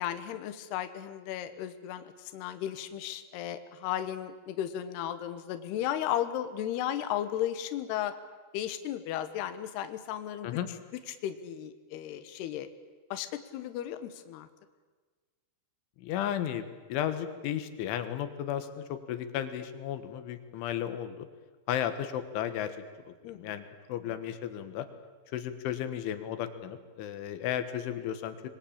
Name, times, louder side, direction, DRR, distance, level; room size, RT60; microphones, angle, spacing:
voice 1, 0.0-2.1 2.3-8.1 8.5-10.6 11.1-12.7 13.1-14.5 23.2-23.5, left 11 dB, 70° left, 9 dB, 3.0 m, -35 dB
voice 2, 16.0-21.3 21.7-22.7 23.1-24.9 25.3-28.5, left 10 dB, 85° left, 10 dB, 3.9 m, -34 dB
26.0 x 21.5 x 8.8 m, 1.4 s
omnidirectional pair, 5.3 m